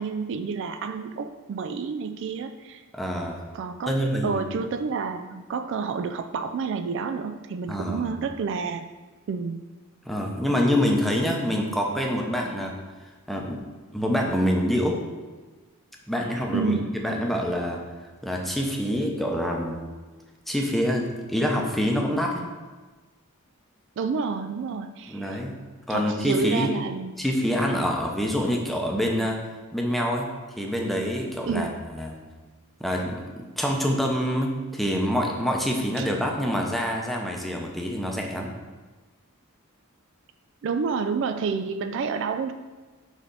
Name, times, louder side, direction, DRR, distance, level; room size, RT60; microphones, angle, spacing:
voice 1, 0.0-2.8 3.5-3.9 4.2-8.9 9.3-9.6 16.5-16.9 24.0-25.4 25.9-27.2 31.5-31.8 36.0-36.1 40.6-42.5, right 5 dB, 60° right, 9 dB, 0.3 m, -29 dB
voice 2, 2.9-3.4 3.9-4.4 7.7-8.2 10.1-12.7 13.3-13.6 13.9-15.0 16.1-16.7 17.0-17.8 18.2-19.8 20.5-22.4 25.1-25.5 25.9-26.7 27.2-29.4 29.7-30.3 30.6-32.1 32.8-38.5, equal, ahead, 0 dB, 0.7 m, -26 dB
6.3 x 3.3 x 5.4 m, 1.3 s
head